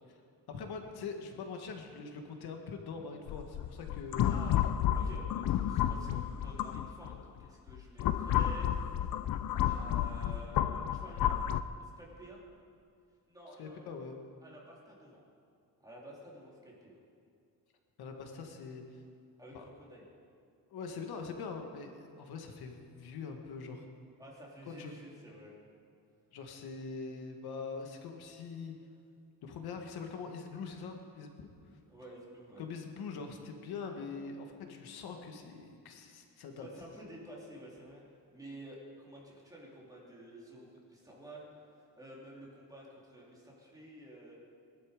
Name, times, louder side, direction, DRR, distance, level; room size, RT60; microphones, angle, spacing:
voice 1, 0.5-4.3 13.6-14.2 18.0-19.0 19.5-19.6 20.7-23.9 24.8-24.9 26.3-28.8 29.4-31.5 32.6-36.7, left 5 dB, 80° left, 3 dB, 1.8 m, -43 dB
sound 1, 3.3-7.2 7.7-11.6, left 11 dB, 65° left, 0.6 m, -31 dB
voice 2, 4.2-9.0 9.6-11.4 11.8-12.4 13.3-13.8 14.4-15.2 15.8-17.0 19.4-20.0 24.2-25.5 31.9-32.6 36.5-38.0 38.3-41.5 41.8-44.4, right 1 dB, 10° right, -5 dB, 3.2 m, -51 dB
21.5 x 12.0 x 5.1 m, 2.3 s
cardioid pair, 170°, 37 cm